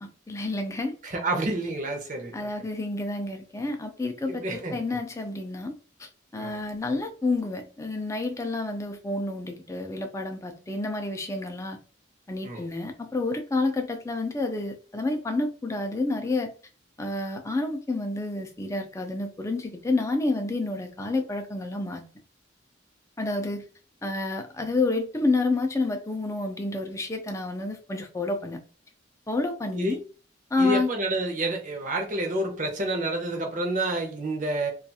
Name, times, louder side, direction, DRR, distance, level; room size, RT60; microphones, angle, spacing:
voice 1, 0.0-1.0 2.3-11.8 12.3-16.5 17.0-22.0 23.2-23.6 24.0-28.6 29.3-30.0 30.5-30.9, left 2 dB, 15° left, 0.4 m, -29 dB
voice 2, 1.0-2.5 4.3-4.8 6.4-6.6 12.4-12.7 29.7-30.0 30.6-34.7, right 2 dB, 40° right, 0.7 m, -29 dB
2.4 x 2.4 x 2.6 m
head